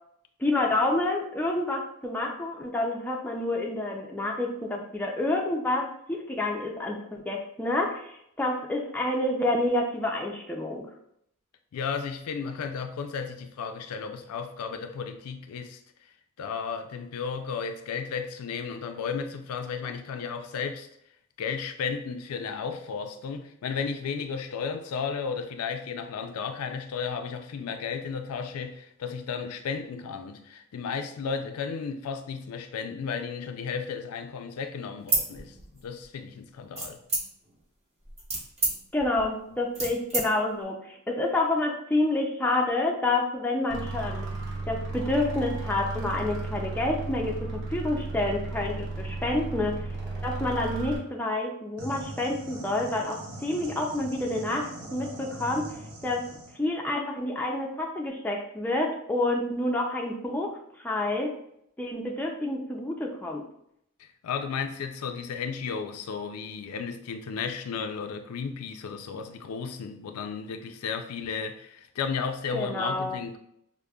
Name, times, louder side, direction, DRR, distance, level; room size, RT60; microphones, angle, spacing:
voice 1, 0.4-10.9 38.9-44.3 44.7-49.9 50.2-56.3 56.6-61.3 61.8-63.4 72.5-73.2, left 2 dB, 10° left, 0.3 m, -28 dB
voice 2, 11.7-15.8 16.4-20.9 21.4-37.0 64.2-73.4, left 6 dB, 80° left, 0.4 m, -34 dB
sound 1, 35.0-36.1 36.8-37.6 38.0-40.2, right 2 dB, 30° right, 0.8 m, -30 dB
sound 2, 43.7-51.0, right 3 dB, 55° right, 0.9 m, -34 dB
sound 3, 51.8-56.6, right 1 dB, 90° right, 0.6 m, -42 dB
4.9 x 2.0 x 2.2 m
head